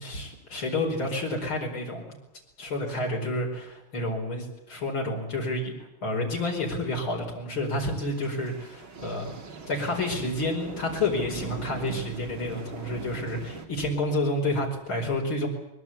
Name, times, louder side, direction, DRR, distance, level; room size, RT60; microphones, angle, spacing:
voice 1, 0.0-2.1 2.6-9.3 9.7-15.5, left 2 dB, 85° left, 0 dB, 5.9 m, -29 dB
sound 1, 8.1-13.7, right 3 dB, 75° right, 3.6 m, -40 dB
23.5 x 22.0 x 8.7 m, 0.91 s
omnidirectional pair, 2.2 m